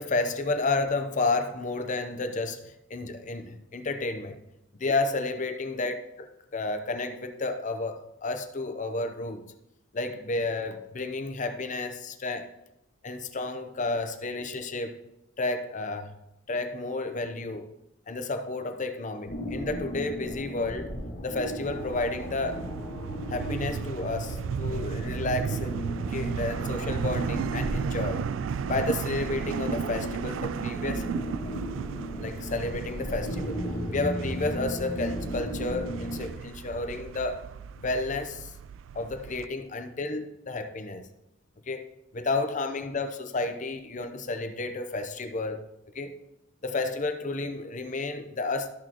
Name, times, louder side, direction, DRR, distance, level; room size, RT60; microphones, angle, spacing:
voice 1, 0.0-4.4 4.8-9.5 9.9-12.5 13.0-15.0 15.4-16.1 16.5-17.7 18.1-20.9 21.2-22.6 23.3-25.8 26.1-28.2 28.7-31.0 32.2-33.6 33.9-37.4 37.8-38.5 38.9-41.0 41.7-41.9 42.1-45.6 45.9-46.1 46.6-48.7, left 3 dB, 40° left, 8 dB, 0.7 m, -31 dB
sound 1, 19.3-36.3, equal, 55° left, 1.9 m, -36 dB
sound 2, 21.7-39.5, right 6 dB, 75° right, 0.3 m, -35 dB
13.0 x 6.5 x 3.0 m, 0.85 s
head